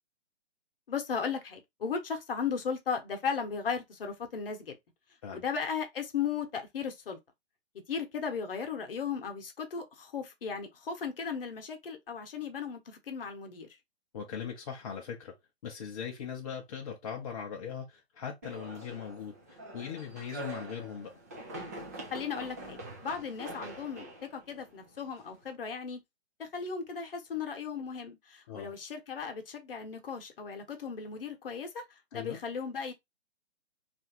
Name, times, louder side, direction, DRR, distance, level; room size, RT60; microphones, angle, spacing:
voice 1, 0.9-4.8 5.3-7.2 7.9-13.7 22.1-22.8 23.0-26.0 26.4-31.8 32.1-32.9, left 6 dB, 55° left, 1.0 m, -36 dB
voice 2, 14.1-15.3 15.6-21.1 28.5-28.7 32.1-32.4, left 7 dB, 35° left, 0.6 m, -40 dB
sound 1, 18.4-25.5, right 1 dB, 15° right, 0.4 m, -45 dB
3.1 x 2.5 x 2.8 m
figure-of-eight pair, 135°, 33 cm